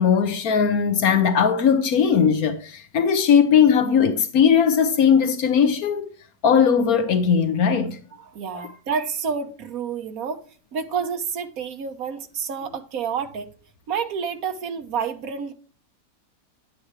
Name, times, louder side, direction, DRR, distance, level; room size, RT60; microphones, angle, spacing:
voice 1, 0.0-6.1 6.4-8.0 8.5-8.6, left 7 dB, 80° left, 1.4 m, -19 dB
voice 2, 8.2-10.4 10.7-13.5 13.9-15.5, right 6 dB, 75° right, 1.5 m, -29 dB
10.0 x 7.8 x 3.2 m
omnidirectional pair, 1.5 m